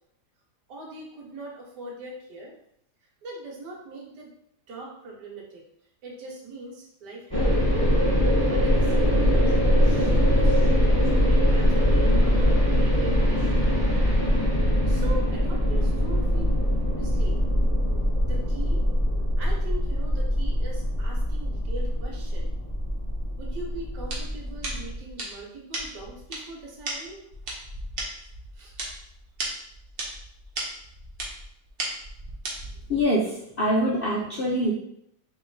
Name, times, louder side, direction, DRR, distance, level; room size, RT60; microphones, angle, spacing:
voice 1, 0.7-2.5 3.2-4.3 4.7-5.6 6.0-7.7 8.4-9.5 9.8-13.6 14.9-17.4 18.2-18.8 19.4-22.5 23.4-27.2 28.5-28.7, right 2 dB, 80° right, -2 dB, 1.6 m, -41 dB
sound 1, 7.3-24.9, equal, 15° left, 1.3 m, -22 dB
sound 2, 24.0-33.0, right 2 dB, 45° right, 0.8 m, -36 dB
voice 2, 32.9-34.7, equal, 65° left, -5 dB, 0.5 m, -24 dB
3.1 x 3.0 x 3.9 m, 0.74 s
omnidirectional pair, 1.8 m